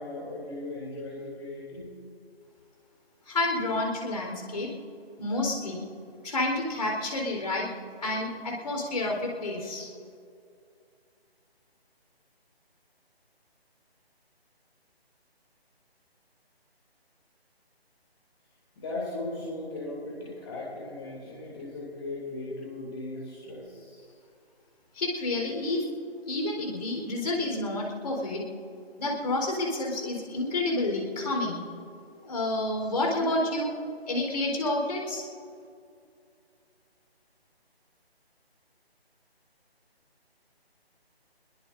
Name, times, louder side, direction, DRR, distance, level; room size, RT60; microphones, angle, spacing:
voice 1, 0.0-1.9 18.8-24.1, left 2 dB, 25° left, -5 dB, 2.9 m, -37 dB
voice 2, 3.3-4.7 5.2-5.8 6.2-7.7 8.0-9.9 24.9-25.8 26.3-28.4 29.0-31.6 32.2-33.7 34.1-35.2, left 2 dB, 40° left, 0 dB, 4.2 m, -29 dB
25.0 x 21.5 x 2.6 m, 2.4 s
figure-of-eight pair, 155°, 32 cm